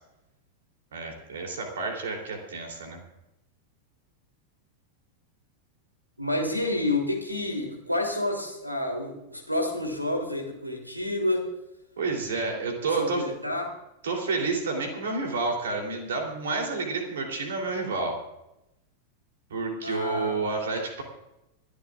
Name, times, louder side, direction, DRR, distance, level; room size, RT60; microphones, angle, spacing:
voice 1, 0.9-3.0 12.0-13.2 14.0-18.2 19.5-21.0, right 3 dB, 65° right, 2 dB, 3.5 m, -30 dB
voice 2, 6.2-11.5 12.9-13.7 19.8-20.3, left 1 dB, 85° right, 1 dB, 3.3 m, -29 dB
28.5 x 11.5 x 2.6 m, 0.90 s
figure-of-eight pair, 90°, 0 cm